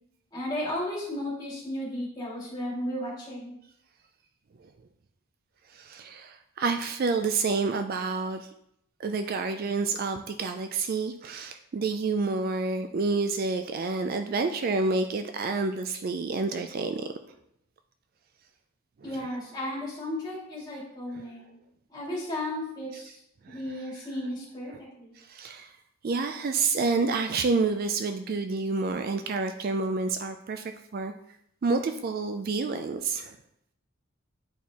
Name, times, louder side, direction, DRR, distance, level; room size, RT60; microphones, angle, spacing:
voice 1, 0.3-3.5 19.0-21.4 21.9-23.2 23.5-25.1, left 1 dB, 20° left, -6 dB, 2.3 m, -34 dB
voice 2, 5.7-8.5 9.0-17.1 19.1-19.2 21.1-21.2 23.4-23.6 25.2-25.7 26.0-31.1 31.6-33.4, right 4 dB, 45° right, 7 dB, 0.3 m, -29 dB
9.2 x 4.3 x 2.9 m, 0.75 s
head